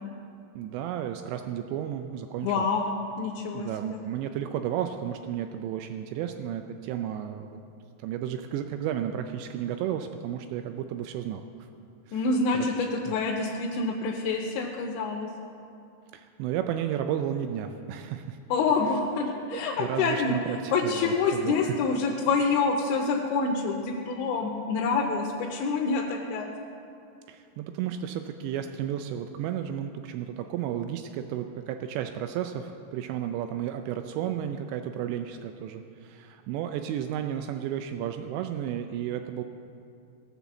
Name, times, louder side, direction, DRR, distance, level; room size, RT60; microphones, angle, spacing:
voice 1, 0.6-2.6 3.5-7.6 8.0-11.5 12.1-12.3 12.5-13.1 16.1-18.4 19.5-21.8 27.3-39.4, right 10 dB, 85° right, 7 dB, 2.5 m, -33 dB
voice 2, 2.4-2.9 3.2-4.0 12.1-15.3 18.5-20.3 20.7-26.5, left 4 dB, 75° left, -1 dB, 3.0 m, -27 dB
17.5 x 7.4 x 7.1 m, 2.5 s
omnidirectional pair, 5.6 m